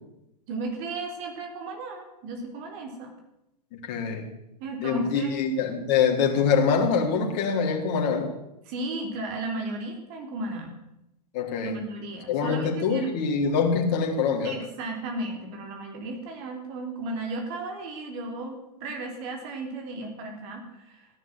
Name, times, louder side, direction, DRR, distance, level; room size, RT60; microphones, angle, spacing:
voice 1, 0.5-3.1 4.6-5.4 8.6-10.7 11.6-13.1 14.4-21.1, right 2 dB, 45° right, 3 dB, 3.9 m, -35 dB
voice 2, 3.8-4.3 4.8-8.3 11.3-11.7 12.3-14.6, left 5 dB, 45° left, 1 dB, 3.9 m, -24 dB
16.0 x 11.0 x 7.7 m, 0.85 s
hypercardioid pair, 105°, 21 cm